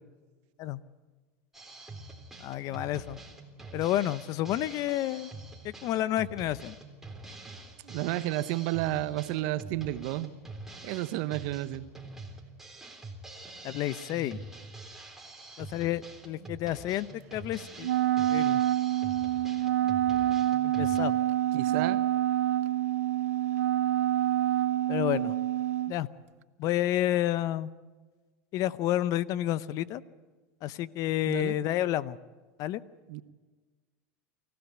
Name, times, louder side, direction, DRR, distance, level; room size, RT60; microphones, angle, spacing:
Drum kit, 1.5-21.0, right 2 dB, 5° right, 3.5 m, -46 dB
voice 1, 2.4-3.2 3.7-5.3 5.6-6.8 13.6-14.4 15.6-17.9 18.3-18.6 20.8-21.2 24.9-25.3 25.9-26.1 26.6-27.7 28.5-30.0 30.6-32.2 32.6-32.8, left 13 dB, 50° left, 17 dB, 0.8 m, -30 dB
voice 2, 7.8-10.3 10.8-11.9 21.5-22.0 31.3-31.6 33.1-33.2, right 16 dB, 65° right, 13 dB, 1.0 m, -31 dB
Wind instrument woodwind instrument, 17.8-25.9, right 13 dB, 85° right, 0.6 m, -27 dB
24.5 x 15.5 x 8.2 m, 1.4 s
supercardioid pair, 115°, 8 cm